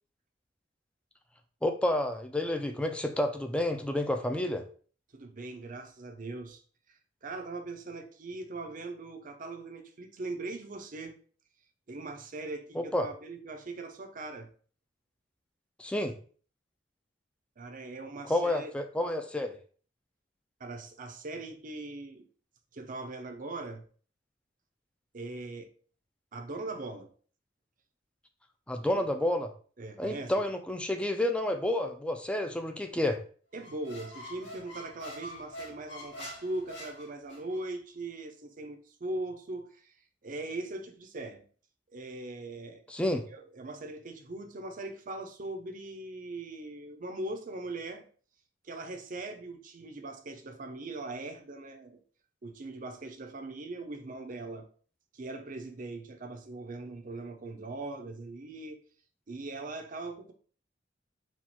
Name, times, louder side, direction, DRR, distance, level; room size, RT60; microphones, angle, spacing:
voice 1, 1.6-4.6 12.8-13.1 15.8-16.1 18.3-19.6 28.7-29.5 30.0-33.2 42.9-43.2, left 1 dB, 5° left, 0.4 m, -30 dB
voice 2, 5.1-6.6 6.9-11.1 11.9-14.5 17.6-18.7 20.6-22.3 22.7-23.8 25.1-25.7 26.3-27.1 29.0-29.1 29.8-30.3 33.5-39.9 40.2-41.4 41.9-42.8 43.3-48.0 48.6-52.0 52.4-54.7 55.1-58.8 59.3-60.3, right 2 dB, 45° right, 0.6 m, -40 dB
Squeak, 33.6-37.6, equal, 85° left, 2.0 m, -45 dB
4.3 x 2.4 x 4.3 m
head